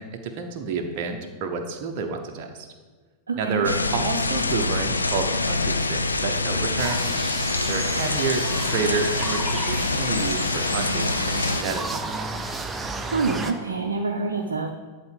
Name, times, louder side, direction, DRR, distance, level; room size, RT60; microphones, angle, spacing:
voice 1, 0.0-2.7 3.3-7.1 7.7-12.3, right 5 dB, 45° right, 3 dB, 0.9 m, -29 dB
voice 2, 3.3-3.7 13.1-14.7, right 4 dB, 70° right, 1 dB, 0.7 m, -26 dB
sound 1, 3.6-11.6, left 3 dB, 80° left, 0.5 m, -25 dB
sound 2, 6.8-13.5, right 3 dB, 15° right, 0.7 m, -33 dB
11.0 x 4.3 x 5.3 m, 1.4 s
figure-of-eight pair, 90°, 0 cm